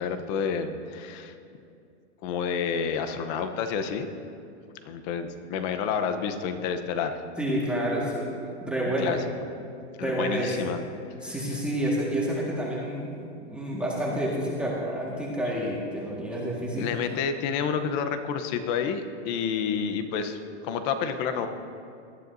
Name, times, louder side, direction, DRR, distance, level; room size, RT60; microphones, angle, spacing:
voice 1, 0.0-1.3 2.2-4.1 4.8-7.2 8.8-9.2 10.0-10.8 11.2-11.3 16.8-21.5, left 6 dB, 40° left, 8 dB, 0.9 m, -29 dB
voice 2, 7.4-8.3 8.6-9.2 10.0-10.6 11.2-13.2 13.5-16.9, right 1 dB, 5° right, -6 dB, 1.8 m, -29 dB
19.5 x 12.5 x 2.7 m, 2.6 s
supercardioid pair, 150°, 35 cm